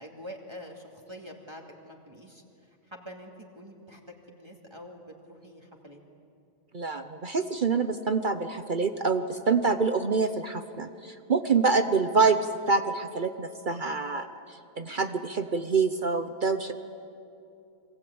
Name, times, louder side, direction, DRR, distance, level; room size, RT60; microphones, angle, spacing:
voice 1, 0.0-2.4 2.9-4.0 4.3-6.0, equal, 20° right, 0 dB, 2.6 m, -45 dB
voice 2, 6.7-14.3 14.8-16.7, right 4 dB, 45° right, 9 dB, 1.0 m, -26 dB
27.5 x 23.0 x 8.7 m, 2.6 s
omnidirectional pair, 1.3 m